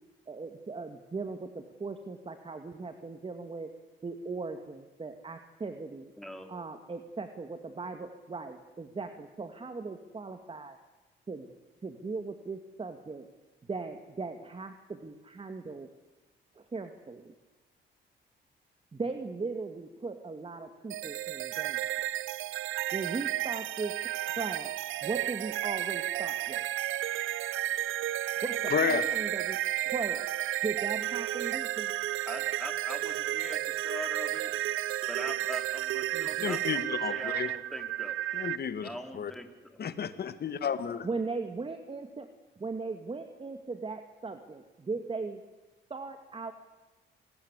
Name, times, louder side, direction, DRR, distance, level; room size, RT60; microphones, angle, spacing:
voice 1, 0.3-3.7 4.0-6.1 6.5-10.8 11.3-11.5 11.8-13.3 13.7-15.9 16.6-17.3 18.9-21.8 22.9-23.9 24.4-24.7 25.0-26.7 28.4-29.6 29.9-30.3 30.6-31.9 36.1-36.5 41.0-42.3 42.6-45.4 45.9-46.5, right 4 dB, 25° right, 7 dB, 2.1 m, -38 dB
voice 2, 6.2-6.5 32.3-34.5 35.1-38.2 38.8-39.8, equal, ahead, 5 dB, 3.8 m, -42 dB
sound 1, 20.9-38.6, right 14 dB, 85° right, 0.9 m, -32 dB
voice 3, 28.7-29.1 36.4-37.5 38.3-38.9 39.2-39.3 39.8-41.1, left 7 dB, 55° left, 12 dB, 2.0 m, -31 dB
28.0 x 20.0 x 8.3 m, 1.2 s
cardioid pair, 90°, 20 cm